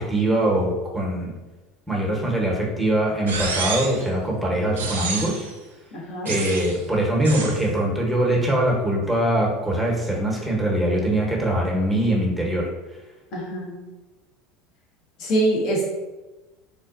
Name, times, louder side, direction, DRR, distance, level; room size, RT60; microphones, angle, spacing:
voice 1, 0.0-1.3 1.9-5.5 6.2-12.7, right 1 dB, 5° right, -2 dB, 1.0 m, -22 dB
sound 1, 3.3-4.1 4.8-5.5 6.3-6.8 7.2-7.6, right 4 dB, 85° right, 0.4 m, -29 dB
voice 2, 5.9-6.3 13.3-13.8 15.2-15.9, right 1 dB, 60° left, -3 dB, 1.1 m, -24 dB
3.9 x 2.3 x 2.5 m, 1.1 s
hypercardioid pair, 80°, 0 cm